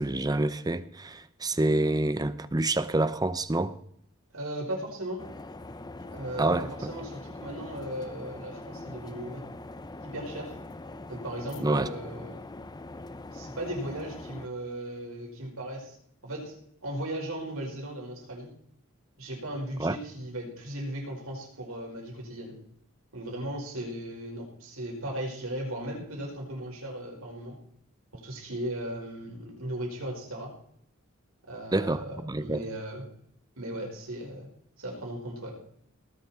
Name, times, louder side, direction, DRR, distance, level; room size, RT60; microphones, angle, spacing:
voice 1, 0.0-3.8 6.4-6.9 11.6-11.9 19.8-20.0 31.7-32.6, right 2 dB, 20° right, 0.7 m, -27 dB
voice 2, 4.3-5.3 6.1-9.5 10.0-10.6 11.1-12.4 13.3-16.0 16.2-16.6 16.8-18.5 19.2-22.6 23.1-27.6 28.1-30.6 31.5-33.0 33.6-34.5 34.8-35.7, right 1 dB, 90° right, 5.4 m, -37 dB
sound 1, 5.2-14.5, left 2 dB, 20° left, 0.6 m, -42 dB
18.5 x 11.5 x 4.5 m
head